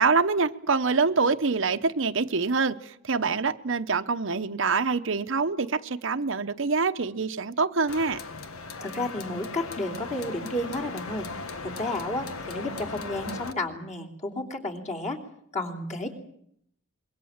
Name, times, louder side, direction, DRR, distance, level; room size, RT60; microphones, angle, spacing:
voice 1, 0.0-8.2, right 4 dB, 60° right, 0.9 m, -25 dB
sound 1, 7.9-13.5, left 3 dB, 85° left, 1.6 m, -37 dB
voice 2, 8.8-11.3 11.6-15.2 15.5-16.1, left 1 dB, 35° left, 3.3 m, -32 dB
25.5 x 22.5 x 7.3 m
head